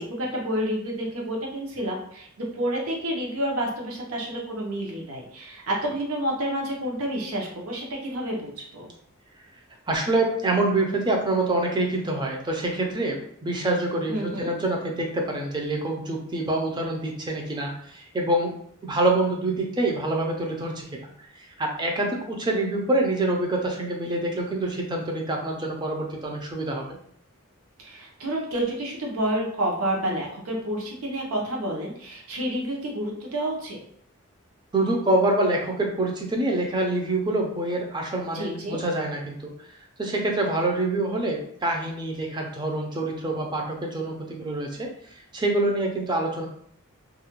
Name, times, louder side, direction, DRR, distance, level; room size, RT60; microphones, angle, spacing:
voice 1, 0.0-8.9 14.1-14.5 27.8-33.8 38.3-38.8, right 1 dB, 75° right, -1 dB, 0.7 m, -29 dB
voice 2, 9.9-18.5 18.8-20.9 21.6-26.8 34.7-39.5 40.0-44.9 45.3-46.5, right 2 dB, 20° right, 1 dB, 0.4 m, -26 dB
2.4 x 2.1 x 2.9 m, 0.64 s
head